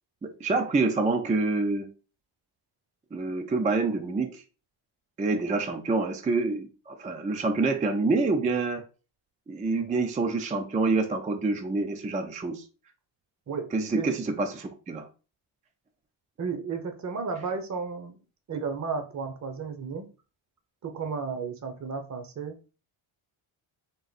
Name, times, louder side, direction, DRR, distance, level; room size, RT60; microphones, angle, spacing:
voice 1, 0.2-1.9 3.1-4.4 5.2-8.8 9.5-12.6 13.7-15.1, right 3 dB, 15° right, 0.4 m, -27 dB
voice 2, 13.5-14.1 16.4-18.2 18.5-20.1 20.8-22.7, right 5 dB, 35° right, 0.8 m, -33 dB
3.8 x 2.5 x 4.0 m
cardioid pair, 120°, 50 cm